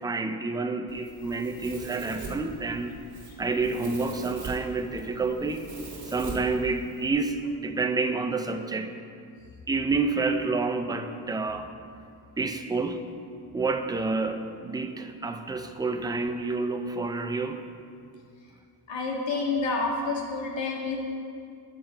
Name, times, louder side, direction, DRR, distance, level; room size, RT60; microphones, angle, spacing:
voice 1, 0.0-2.9 3.4-5.6 6.1-8.9 9.7-11.7 12.4-13.0 13.5-17.6, right 3 dB, 10° right, 6 dB, 0.3 m, -29 dB
Domestic sounds home sounds, 0.9-7.1, right 3 dB, 40° right, 2.0 m, -41 dB
voice 2, 18.9-21.0, left 3 dB, 85° left, -1 dB, 1.7 m, -28 dB
10.0 x 7.6 x 4.6 m, 2.4 s
wide cardioid pair, 150°, 44 cm